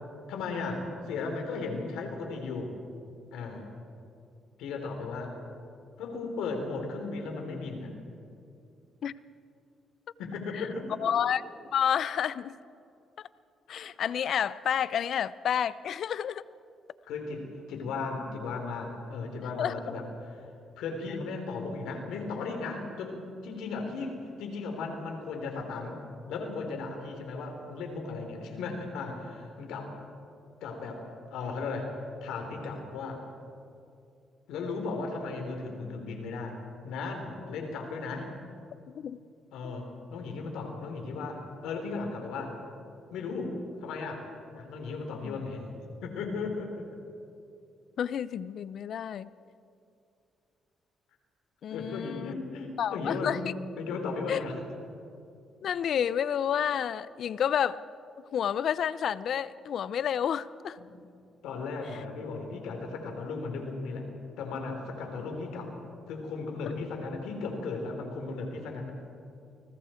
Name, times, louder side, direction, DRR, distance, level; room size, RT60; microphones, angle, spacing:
voice 1, 0.3-2.7 3.3-3.6 4.6-5.3 6.0-7.9 10.2-11.1 13.7-13.8 17.1-20.0 20.8-26.0 26.3-29.9 30.6-31.0 31.3-31.9 32.2-33.2 34.5-36.6 36.8-38.3 39.5-42.6 43.1-43.6 43.8-44.2 44.5-45.6 46.0-47.0 51.7-53.4 53.8-54.6 60.8-60.9 61.4-64.1 64.4-65.7 66.1-68.9, left 4 dB, 90° left, 3 dB, 3.6 m, -36 dB
voice 2, 11.0-11.4 11.7-12.5 13.2-13.3 13.7-16.4 19.6-19.7 38.9-39.2 39.6-39.8 45.2-45.4 48.0-49.3 51.6-52.3 52.8-53.5 54.3-54.4 55.6-57.8 58.3-60.8, left 9 dB, 65° left, 17 dB, 0.6 m, -30 dB
29.0 x 20.5 x 4.5 m, 2.5 s
cardioid pair, 90°, 0 cm